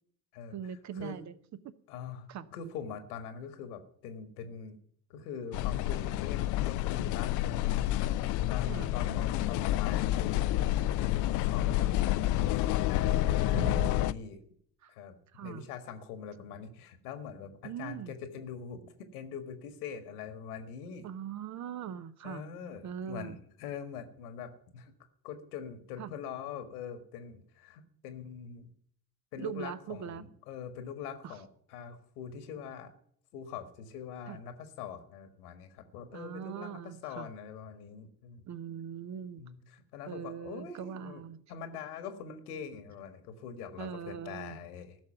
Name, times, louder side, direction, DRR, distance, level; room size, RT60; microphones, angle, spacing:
voice 1, 0.5-1.3 1.6-1.7 2.3-2.5 8.7-8.9 13.5-13.9 14.8-14.9 15.3-15.7 17.6-18.1 21.0-22.5 22.8-23.4 26.0-26.1 29.4-30.2 31.2-31.3 34.3-34.4 36.1-37.3 38.5-39.4 40.1-41.4 43.8-44.6, right 8 dB, 35° right, 13 dB, 0.9 m, -41 dB
voice 2, 1.9-4.8 5.1-10.5 11.0-11.9 12.5-14.4 14.9-15.2 15.4-21.1 22.2-24.9 25.2-28.7 29.3-32.9 33.3-38.4 39.4-41.2 41.5-45.0, left 7 dB, 65° left, 9 dB, 1.8 m, -43 dB
sound 1, 5.5-14.1, left 14 dB, 40° left, 0.5 m, -29 dB
15.5 x 6.7 x 8.9 m, 0.62 s
figure-of-eight pair, 55°, 47 cm